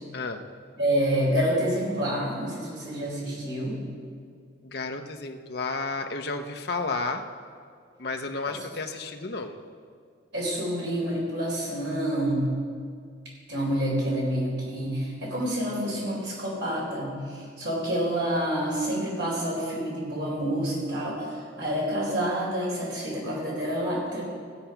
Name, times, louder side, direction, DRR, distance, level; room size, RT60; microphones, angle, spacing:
voice 1, 0.1-0.4 4.6-7.2 8.0-9.6, left 3 dB, 55° left, 4 dB, 0.8 m, -32 dB
voice 2, 0.8-3.8 10.3-12.5 13.5-24.2, right 1 dB, 70° right, -4 dB, 4.1 m, -28 dB
16.0 x 7.8 x 5.8 m, 2.1 s
head